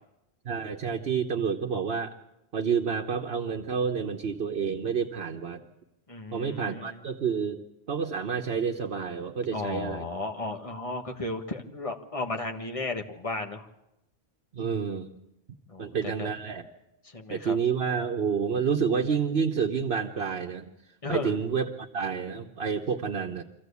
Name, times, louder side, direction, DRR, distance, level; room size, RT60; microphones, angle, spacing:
voice 1, 0.4-2.1 2.5-5.6 6.3-10.1 14.5-15.1 15.8-16.6 17.3-20.7 21.1-23.4, right 6 dB, 70° right, 2 dB, 1.3 m, -29 dB
voice 2, 6.1-7.0 9.5-13.7 15.7-16.3 17.0-17.5 21.0-21.3, left 2 dB, 35° left, 3 dB, 1.7 m, -34 dB
25.0 x 15.0 x 8.3 m, 0.94 s
omnidirectional pair, 1.0 m